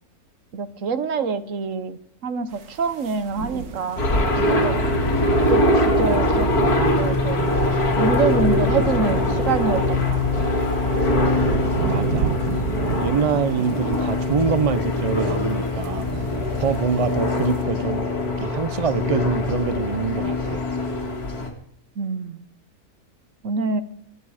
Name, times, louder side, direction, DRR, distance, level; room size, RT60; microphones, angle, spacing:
voice 1, 0.5-4.0 4.4-4.8 5.5-7.5 8.0-10.5 22.0-22.4 23.4-23.8, right 5 dB, 60° right, 12 dB, 1.3 m, -26 dB
sound 1, 2.5-17.6, right 7 dB, 85° right, 1.7 m, -33 dB
sound 2, 4.0-21.5, left 2 dB, 90° left, 2.8 m, -22 dB
voice 2, 11.9-12.3 13.0-16.1 16.6-18.1 18.4-20.6, right 6 dB, 40° right, 13 dB, 0.5 m, -25 dB
25.0 x 9.7 x 4.9 m, 0.72 s
omnidirectional pair, 1.6 m